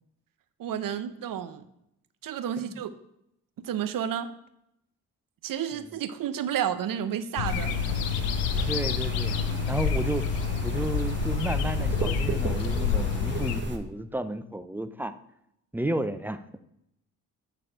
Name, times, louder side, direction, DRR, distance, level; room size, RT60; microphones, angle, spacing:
voice 1, 0.6-1.6 2.2-2.9 3.6-4.3 5.4-7.8, right 9 dB, 50° right, 11 dB, 0.8 m, -31 dB
sound 1, 7.4-13.6, left 7 dB, 80° left, 0.6 m, -28 dB
sound 2, 7.4-13.8, right 3 dB, 25° right, 1.1 m, -34 dB
voice 2, 8.5-9.3 9.7-10.3 10.6-15.1 15.7-16.4, right 1 dB, 5° right, 11 dB, 0.5 m, -32 dB
9.1 x 4.2 x 4.4 m, 0.79 s
hypercardioid pair, 45°, 42 cm